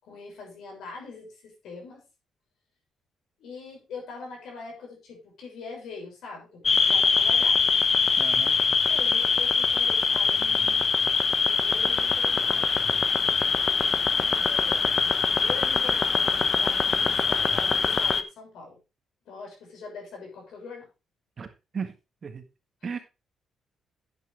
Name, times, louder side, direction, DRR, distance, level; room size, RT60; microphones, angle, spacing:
voice 1, 0.0-2.0 3.4-7.6 8.9-10.9 11.4-12.8 14.4-18.8 19.2-20.9, left 4 dB, 75° left, 1 dB, 6.6 m, -42 dB
sound 1, 6.7-18.2, left 5 dB, 40° left, 1.0 m, -23 dB
voice 2, 8.2-8.6 21.4-21.5 21.7-22.0 22.2-22.4 22.8-23.0, right 6 dB, 40° right, 7 dB, 1.6 m, -34 dB
10.5 x 8.7 x 3.5 m, 0.28 s
cardioid pair, 90°, 0 cm